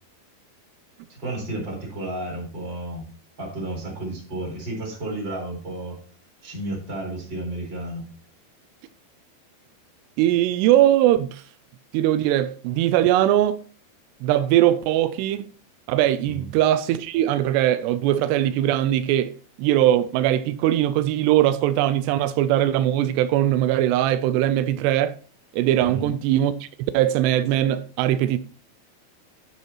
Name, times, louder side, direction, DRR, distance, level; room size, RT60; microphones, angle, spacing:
voice 1, 1.1-3.0 3.4-6.0 6.4-8.0 16.3-16.5 25.8-26.1, right 1 dB, 25° right, 4.6 m, -32 dB
voice 2, 10.2-11.4 11.9-13.6 14.2-15.5 15.9-19.3 19.6-25.2 25.5-26.7 26.9-28.4, right 12 dB, 90° right, 2.7 m, -20 dB
11.5 x 9.2 x 2.9 m
omnidirectional pair, 4.8 m